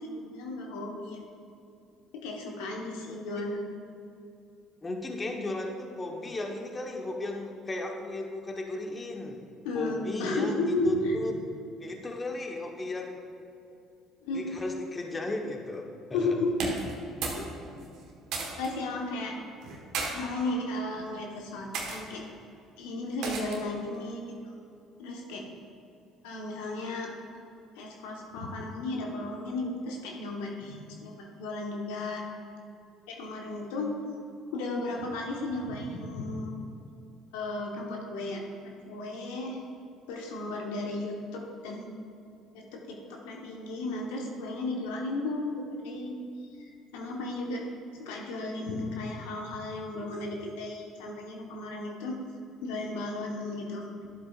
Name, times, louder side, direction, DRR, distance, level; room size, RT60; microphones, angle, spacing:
voice 1, 0.0-1.2 2.2-3.7 9.6-11.2 14.2-14.5 16.1-16.5 17.3-17.4 18.6-19.3 20.1-22.2 22.8-24.2 25.0-25.4 26.2-27.1 27.8-32.2 33.1-34.0 34.5-36.5 37.3-39.6 40.1-41.9 42.5-46.1 46.6-47.6 48.0-52.2 52.6-54.1, left 2 dB, 80° left, 0 dB, 1.1 m, -34 dB
voice 2, 3.1-3.5 4.8-9.4 9.7-11.3 11.8-13.2 14.3-16.3, left 2 dB, 25° left, 2 dB, 1.1 m, -35 dB
sound 1, 16.5-17.5 17.8-18.7 19.6-20.1 20.9-21.1 21.7-22.0 23.2-23.7, right 4 dB, 70° right, 1.3 m, -34 dB
11.0 x 7.6 x 2.4 m, 2.6 s
hypercardioid pair, 65°, 0 cm